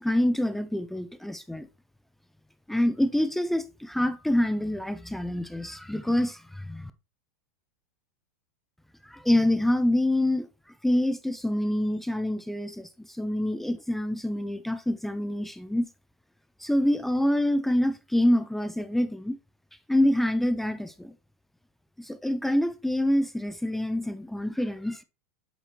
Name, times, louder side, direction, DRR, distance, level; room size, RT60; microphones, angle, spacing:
voice 1, 0.0-1.7 2.7-6.9 9.0-10.5 10.8-15.9 16.6-19.4 19.9-21.1 22.0-25.0, left 1 dB, 5° left, 0.4 m, -26 dB
8.1 x 4.3 x 2.9 m
supercardioid pair, 135°, 8 cm